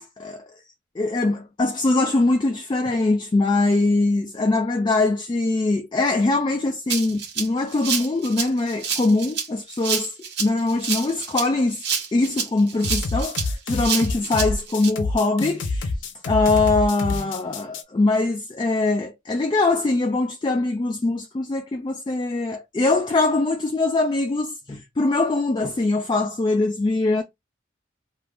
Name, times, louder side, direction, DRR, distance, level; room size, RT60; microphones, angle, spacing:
voice 1, 1.0-11.8 12.1-15.9 16.2-27.2, left 2 dB, 25° left, 0.3 m, -22 dB
Rattle (instrument), 6.9-14.9, right 6 dB, 60° right, 0.9 m, -28 dB
sound 1, 12.8-17.8, left 3 dB, 70° left, 0.6 m, -27 dB
2.5 x 2.4 x 3.3 m
head